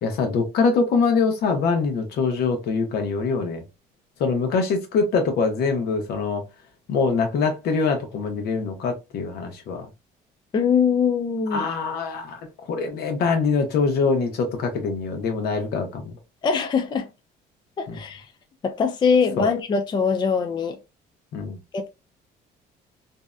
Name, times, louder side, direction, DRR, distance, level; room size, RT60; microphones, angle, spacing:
voice 1, 0.0-3.6 4.2-6.4 6.9-9.9 11.5-12.4 12.7-16.1 17.9-18.0 19.4-19.5 21.3-21.6, left 4 dB, 70° left, 0.8 m, -24 dB
voice 2, 10.5-11.7 16.4-17.1 17.8-18.3 18.6-20.8 21.7-21.9, left 6 dB, 25° left, 0.4 m, -22 dB
2.6 x 2.1 x 2.3 m
cardioid pair, 110°, 17 cm